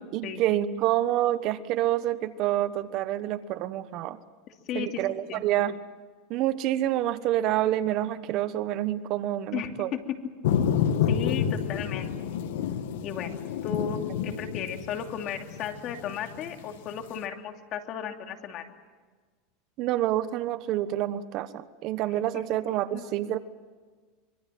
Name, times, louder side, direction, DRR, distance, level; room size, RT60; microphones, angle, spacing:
voice 1, 0.0-4.2 4.7-5.8 6.3-9.9 19.8-23.4, right 13 dB, 50° right, 13 dB, 1.2 m, -27 dB
voice 2, 4.7-5.4 9.5-10.2 11.1-12.1 13.0-13.3 13.6-18.6 22.3-22.4 22.9-23.1, left 8 dB, 45° left, 4 dB, 2.9 m, -35 dB
sound 1, 10.4-17.1, left 8 dB, 80° left, 1.9 m, -29 dB
25.5 x 23.5 x 7.7 m, 1.4 s
supercardioid pair, 140°, 0 cm